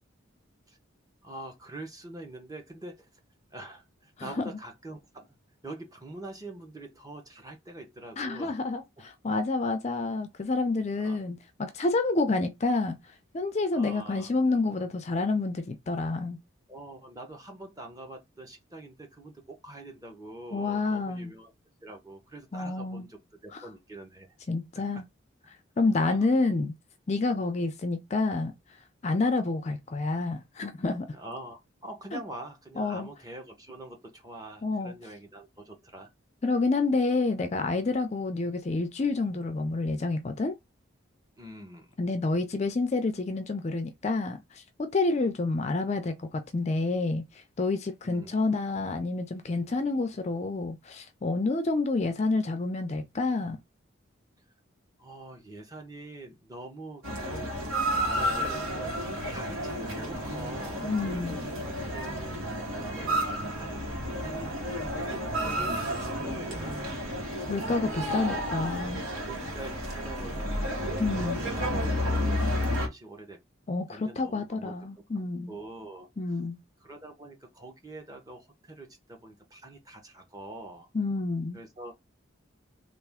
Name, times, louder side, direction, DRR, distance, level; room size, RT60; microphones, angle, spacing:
voice 1, 1.2-3.1 3.5-5.3 5.6-8.6 11.0-11.2 13.7-14.3 16.7-21.5 21.8-24.3 24.7-24.8 26.0-26.2 31.1-36.1 41.4-42.0 48.0-48.3 55.0-57.5 58.0-58.9 59.3-63.8 64.2-65.2 65.5-68.5 69.3-71.3 71.5-73.4 73.9-76.4 76.8-80.9 81.5-81.9, right 1 dB, 20° right, 0.8 m, -45 dB
voice 2, 4.2-4.5 8.2-13.0 13.3-16.4 20.5-21.3 22.5-23.1 23.5-23.7 24.5-25.0 25.8-26.7 27.1-28.5 29.0-31.1 32.1-32.2 32.8-33.1 34.6-34.9 36.4-40.5 42.0-53.6 60.8-61.4 67.5-69.0 71.0-71.4 73.7-75.6 76.2-76.6 80.9-81.6, left 3 dB, 35° left, 0.4 m, -28 dB
sound 1, 57.0-72.9, equal, 90° right, 1.3 m, -31 dB
3.3 x 2.5 x 3.5 m
head